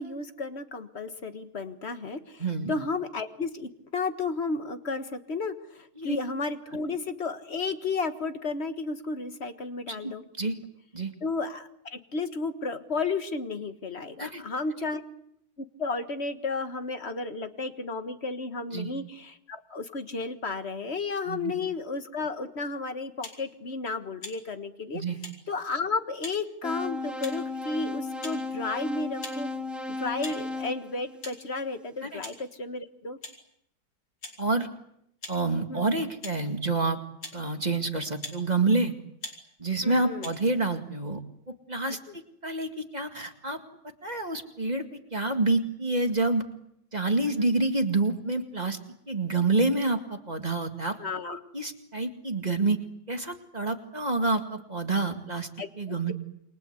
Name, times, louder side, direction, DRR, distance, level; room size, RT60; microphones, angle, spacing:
voice 1, 0.0-10.2 11.2-15.0 15.6-25.0 25.5-29.5 30.0-33.2 35.7-35.9 39.8-40.3 47.4-47.5 51.0-51.4 55.6-56.1, left 3 dB, 35° left, 9 dB, 1.7 m, -33 dB
voice 2, 2.4-2.7 6.0-6.2 9.9-10.6 10.9-11.1 14.2-14.4 18.7-18.9 21.3-21.5 24.9-25.2 30.3-30.4 32.0-32.2 34.4-34.7 35.3-37.0 37.3-38.9 39.6-41.2 41.5-42.0 42.4-43.6 44.0-44.8 45.1-46.4 46.9-48.8 49.1-51.0 51.3-52.8 53.1-55.5 55.8-56.1, right 3 dB, 25° right, 5 dB, 2.0 m, -28 dB
sound 1, 23.2-23.4 24.2-24.4 25.2-25.4 26.2-26.4 27.2-27.5 28.2-28.4 29.2-29.4 30.2-30.4 31.2-31.3 32.2-32.4 33.2-33.4 34.2-34.4 35.2-35.4 36.2-36.4 37.2-37.4 38.2-38.4 39.2-39.4 40.2-40.3, left 2 dB, 90° left, 5.4 m, -40 dB
sound 2, 26.6-31.8, left 3 dB, ahead, 1.3 m, -35 dB
28.5 x 24.0 x 8.2 m, 0.76 s
omnidirectional pair, 2.0 m